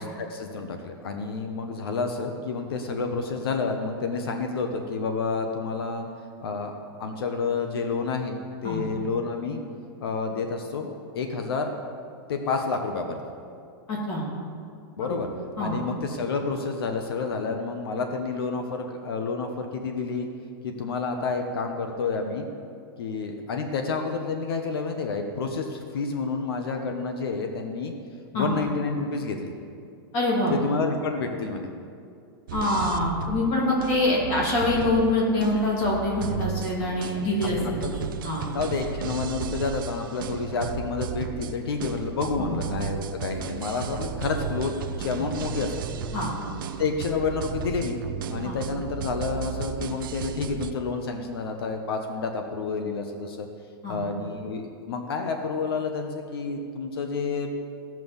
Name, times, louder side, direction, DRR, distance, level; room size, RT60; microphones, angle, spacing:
voice 1, 0.0-6.1 6.4-9.6 10.0-11.7 12.3-13.2 15.0-15.3 15.6-20.3 20.6-22.5 23.0-27.9 28.3-29.5 30.5-31.7 37.2-37.3 37.6-37.9 38.5-45.8 46.8-48.0 48.3-53.5 53.9-57.5, left 4 dB, 70° left, 5 dB, 1.2 m, -29 dB
voice 2, 13.9-14.2 15.6-15.7 28.3-28.5 30.1-30.5 32.5-38.5 42.4-42.6 46.1-46.3 48.4-48.6 53.8-54.0, left 2 dB, 25° left, -3 dB, 2.5 m, -25 dB
sound 1, 32.5-50.7, right 7 dB, 55° right, 0.6 m, -34 dB
16.0 x 6.1 x 7.2 m, 2.3 s
supercardioid pair, 180°, 13 cm